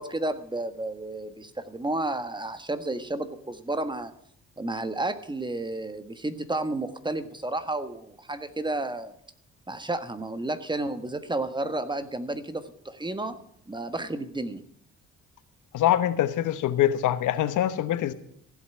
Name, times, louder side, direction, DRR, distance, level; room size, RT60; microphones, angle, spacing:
voice 1, 0.0-4.1 4.6-9.1 9.7-13.3 13.7-14.6, right 2 dB, 15° right, 11 dB, 1.4 m, -31 dB
voice 2, 15.7-18.1, left 12 dB, 80° left, 13 dB, 1.1 m, -24 dB
15.5 x 8.0 x 9.1 m, 0.69 s
cardioid pair, 90°, 30 cm